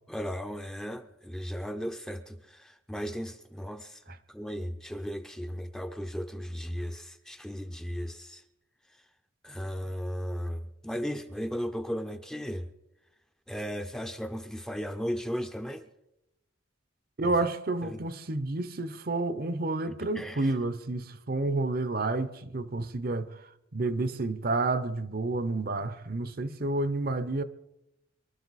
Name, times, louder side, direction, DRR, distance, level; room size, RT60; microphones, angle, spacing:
voice 1, 0.1-4.0 4.3-8.4 9.4-12.7 13.5-15.8 17.2-17.3 17.8-18.0 20.2-20.5, equal, 5° left, 0.6 m, -36 dB
voice 2, 17.2-27.4, right 2 dB, 45° right, 0.7 m, -30 dB
24.0 x 12.5 x 4.1 m
head